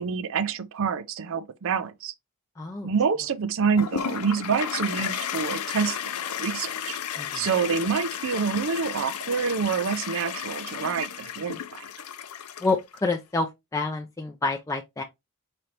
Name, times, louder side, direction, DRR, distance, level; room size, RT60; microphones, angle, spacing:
voice 1, 0.0-2.1 2.8-7.0 7.3-11.8, right 6 dB, 60° right, 0.5 m, -27 dB
voice 2, 2.6-2.9 7.2-7.5 12.6-15.0, left 3 dB, 15° left, 0.4 m, -28 dB
Toilet flush, 3.8-13.0, left 9 dB, 90° left, 0.5 m, -33 dB
5.0 x 3.2 x 2.8 m
head